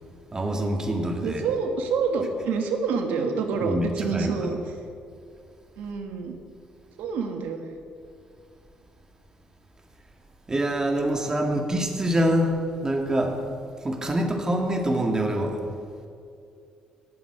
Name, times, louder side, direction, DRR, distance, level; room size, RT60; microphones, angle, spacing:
voice 1, 0.3-1.4 3.6-4.5 10.5-13.4 13.8-15.6, right 1 dB, 25° right, 3 dB, 2.0 m, -25 dB
voice 2, 1.2-4.8 5.8-6.3 7.0-7.7, right 5 dB, 80° right, 5 dB, 1.5 m, -27 dB
19.5 x 7.3 x 5.0 m, 2.4 s
cardioid pair, 80°, 3 cm